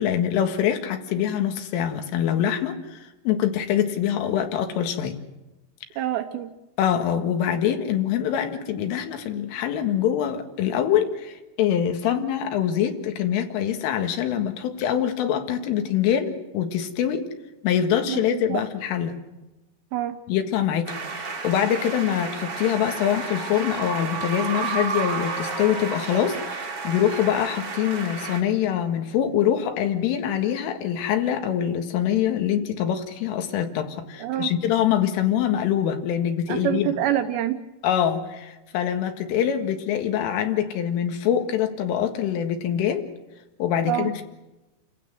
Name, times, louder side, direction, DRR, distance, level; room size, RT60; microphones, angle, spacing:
voice 1, 0.0-5.1 6.8-17.2 17.6-19.2 20.3-36.9 37.8-43.0 43.6-44.2, left 9 dB, 80° left, 5 dB, 4.3 m, -24 dB
voice 2, 6.0-6.5 18.1-18.2 18.5-18.6 19.9-20.2 34.2-34.5 36.5-37.6 43.8-44.1, right 12 dB, 75° right, 7 dB, 2.8 m, -26 dB
sound 1, 20.9-28.4, right 4 dB, 55° right, 1.7 m, -31 dB
29.0 x 16.0 x 7.9 m, 1.0 s
omnidirectional pair, 5.7 m